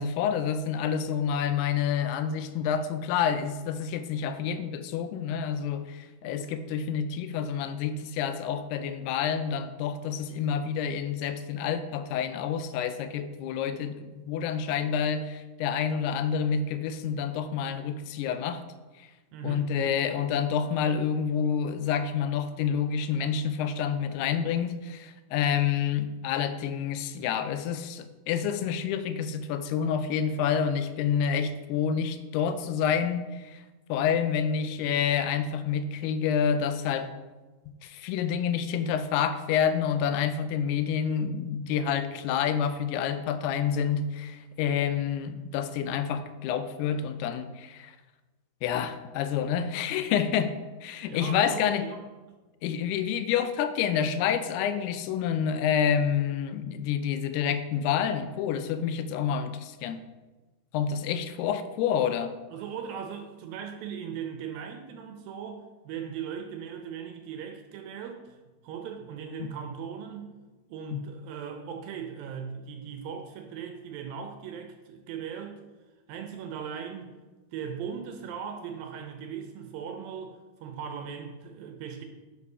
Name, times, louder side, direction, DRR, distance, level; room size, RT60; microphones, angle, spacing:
voice 1, 0.0-18.6 19.0-19.1 19.4-33.6 33.9-37.1 37.8-47.9 48.6-51.9 52.6-60.0 60.7-62.3 69.4-69.5 70.9-71.0, left 7 dB, 90° left, 10 dB, 2.6 m, -28 dB
voice 2, 19.3-20.0 51.1-52.1 62.5-68.4 68.6-70.3 70.7-75.6 76.1-77.1 77.5-82.0, right 7 dB, 75° right, 5 dB, 2.3 m, -39 dB
8.3 x 5.5 x 5.4 m, 1.2 s
omnidirectional pair, 4.6 m